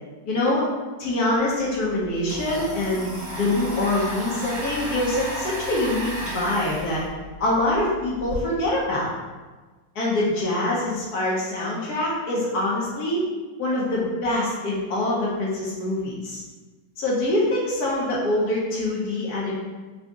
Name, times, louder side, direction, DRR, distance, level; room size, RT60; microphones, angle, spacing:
voice 1, 0.3-0.7 1.0-7.0 7.4-9.1 9.9-13.2 13.6-16.4 17.0-19.5, left 1 dB, 65° left, -5 dB, 1.1 m, -24 dB
Domestic sounds home sounds, 1.7-8.4, right 1 dB, 25° right, 0.9 m, -34 dB
3.7 x 2.4 x 3.5 m, 1.3 s
omnidirectional pair, 2.1 m